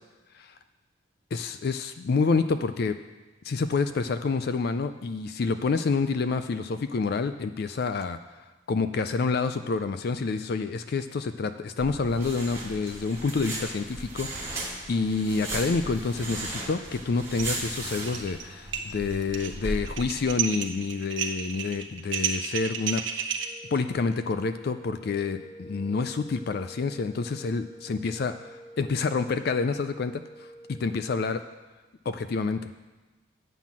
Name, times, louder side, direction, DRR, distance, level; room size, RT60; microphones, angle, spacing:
voice 1, 1.3-3.0 3.4-8.2 8.7-23.0 23.7-31.4 32.1-32.7, left 4 dB, 50° left, 10 dB, 0.4 m, -28 dB
sound 1, 11.8-20.3, right 2 dB, 15° right, 1.8 m, -37 dB
sound 2, 17.4-17.7 18.0-18.4 18.7-23.5, right 8 dB, 65° right, 0.8 m, -31 dB
sound 3, 23.3-31.5, equal, 75° left, 3.2 m, -48 dB
9.1 x 5.8 x 7.3 m, 1.2 s
head